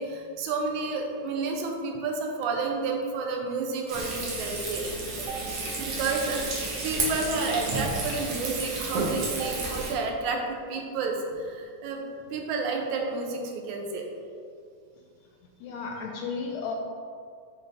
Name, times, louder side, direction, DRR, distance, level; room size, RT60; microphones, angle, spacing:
voice 1, 0.0-4.9 5.3-5.4 5.8-12.0 12.3-14.0, right 4 dB, 80° right, 2 dB, 2.1 m, -30 dB
Frying (food), 3.9-9.9, right 2 dB, 65° right, 1.8 m, -32 dB
voice 2, 15.6-16.7, left 5 dB, 80° left, 1 dB, 1.6 m, -33 dB
6.9 x 3.4 x 4.0 m, 2.3 s
omnidirectional pair, 3.4 m